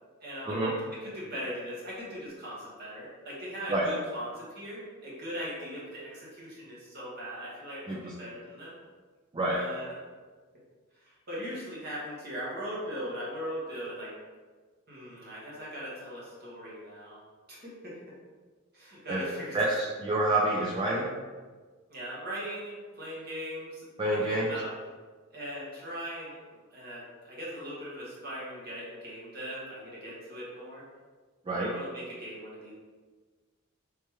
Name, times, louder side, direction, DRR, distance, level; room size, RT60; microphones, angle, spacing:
voice 1, 0.2-0.6 0.9-8.7 9.5-10.0 10.9-14.1 14.9-17.2 17.5-18.0 18.7-19.6 21.9-24.7 25.3-26.3 26.7-30.8 31.5-32.7, equal, 45° right, -7 dB, 1.3 m, -39 dB
voice 2, 20.0-21.1 24.0-24.5 31.5-31.7, right 1 dB, 20° right, -4 dB, 0.3 m, -27 dB
3.3 x 3.2 x 3.0 m, 1.4 s
head